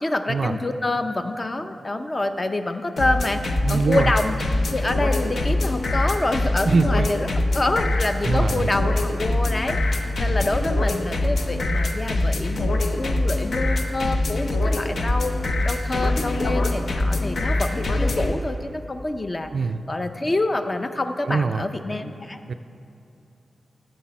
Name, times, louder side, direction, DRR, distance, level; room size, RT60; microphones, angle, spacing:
voice 1, 0.0-4.4 4.7-7.3 7.5-15.3 15.6-22.5, left 2 dB, 30° left, 7 dB, 0.6 m, -27 dB
sound 1, 3.0-18.3, left 2 dB, 70° left, 0.7 m, -23 dB
voice 2, 3.6-4.1 6.7-7.1 8.3-8.7 19.5-19.8 21.3-21.6 22.5-22.6, right 4 dB, 60° right, 10 dB, 0.3 m, -22 dB
15.5 x 6.8 x 4.2 m, 2.7 s
wide cardioid pair, 105°, 0 cm